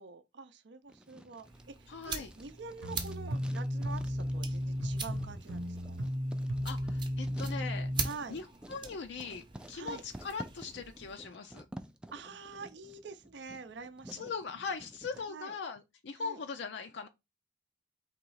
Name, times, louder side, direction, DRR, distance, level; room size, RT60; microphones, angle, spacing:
voice 1, 0.0-6.1 8.0-8.4 9.7-10.0 12.1-14.3 15.2-15.6 16.2-16.4, right 4 dB, 60° right, 0.5 m, -46 dB
Writing, 0.9-15.2, right 1 dB, 5° right, 0.3 m, -51 dB
sound 1, 1.4-11.2, right 5 dB, 25° right, 0.8 m, -44 dB
voice 2, 1.9-2.3 6.6-7.9 8.3-11.7 14.1-17.1, left 5 dB, 60° left, 0.5 m, -40 dB
sound 2, 2.8-8.1, equal, 90° right, 0.9 m, -34 dB
3.7 x 3.1 x 4.7 m
head